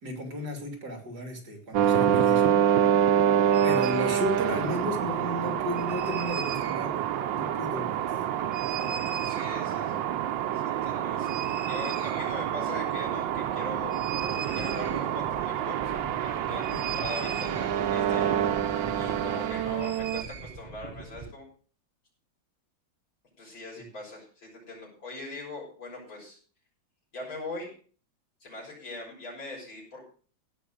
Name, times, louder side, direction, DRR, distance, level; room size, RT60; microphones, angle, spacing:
voice 1, 0.0-2.8 3.6-7.0 7.3-8.2 8.7-8.9 16.5-17.0 23.8-23.9, left 1 dB, 50° right, 3 dB, 3.3 m, -34 dB
sound 1, 1.7-20.2, right 10 dB, 70° right, 1.4 m, -27 dB
sound 2, 3.5-4.2 5.7-6.9 8.5-9.6 11.2-12.6 12.8-12.9 13.1-21.3, right 6 dB, 35° right, 0.7 m, -40 dB
voice 2, 9.2-9.9 10.5-13.9 14.5-15.9 16.2-21.5 23.4-26.4 27.1-27.7 28.4-30.1, left 2 dB, 75° left, -3 dB, 7.2 m, -41 dB
17.0 x 5.9 x 6.4 m, 0.42 s
omnidirectional pair, 2.2 m